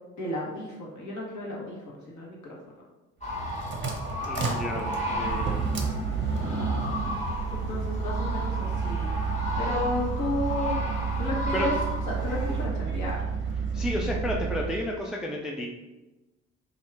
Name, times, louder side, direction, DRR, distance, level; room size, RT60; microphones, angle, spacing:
voice 1, 0.2-1.8 2.1-2.4 7.5-9.1 9.6-10.8 11.2-11.7 12.1-13.2, left 1 dB, 50° left, -3 dB, 1.2 m, -32 dB
sound 1, 3.2-12.7, left 1 dB, 20° left, 1.2 m, -34 dB
sound 2, 3.2-14.8, right 5 dB, 30° right, 0.7 m, -31 dB
voice 2, 4.2-5.6 11.5-11.7 13.7-15.8, left 1 dB, ahead, -1 dB, 0.3 m, -32 dB
2.8 x 2.4 x 3.3 m, 1.1 s
hypercardioid pair, 50°, 37 cm